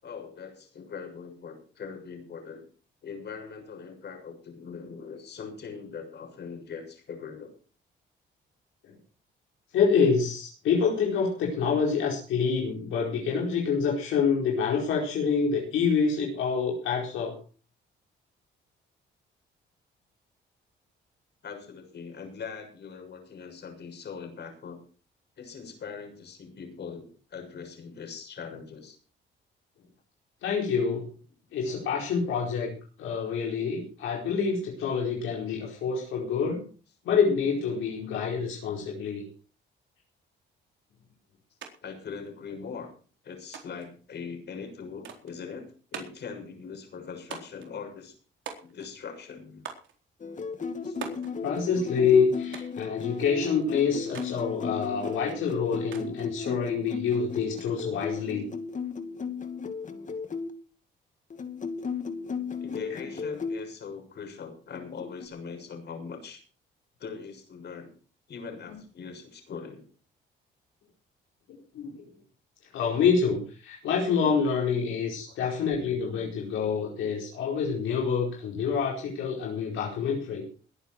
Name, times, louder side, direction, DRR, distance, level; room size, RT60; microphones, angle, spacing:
voice 1, 0.0-2.6 3.0-7.5 21.4-24.8 25.4-29.0 31.7-31.8 41.8-42.9 43.2-48.2 48.6-49.6 50.8-51.0 62.6-66.4 67.0-67.9 68.3-69.8 75.3-75.5, left 6 dB, 60° left, 4 dB, 6.6 m, -41 dB
voice 2, 9.7-17.4 30.4-31.1 31.5-36.7 37.0-39.3 51.4-58.5 62.9-63.0 71.5-72.1 72.7-80.4, left 6 dB, 85° left, -1 dB, 4.8 m, -27 dB
sound 1, 41.6-41.7 42.0-42.8 43.5-43.9 45.0-45.4 45.9-46.3 47.3-47.7 48.5-49.0 49.6-49.9 51.0-51.3 52.5-52.8 54.1-54.4 55.9-56.3, right 7 dB, 70° right, 4.1 m, -42 dB
sound 2, 50.2-60.5 61.3-63.6 64.7-65.3, left 5 dB, 40° left, 2.3 m, -35 dB
21.0 x 9.8 x 4.7 m, 0.39 s
cardioid pair, 90°, 20 cm